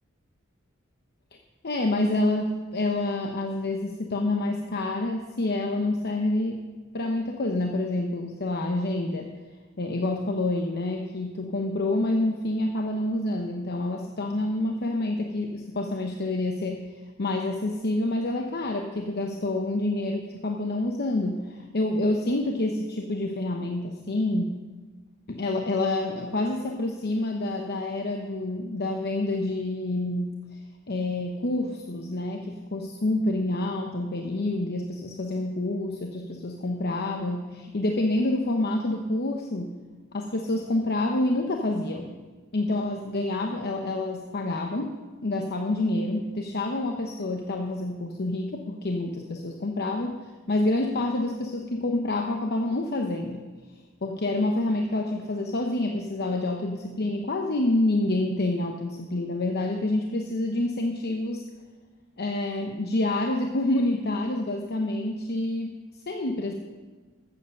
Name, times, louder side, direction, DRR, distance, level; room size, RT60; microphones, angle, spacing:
voice 1, 1.6-6.6 6.9-9.3 9.8-16.8 17.2-24.5 25.3-30.6 30.9-39.7 40.1-42.1 42.5-53.5 54.0-61.5 62.2-66.5, left 2 dB, 50° left, 3 dB, 0.9 m, -28 dB
14.0 x 8.1 x 6.6 m, 1.4 s
head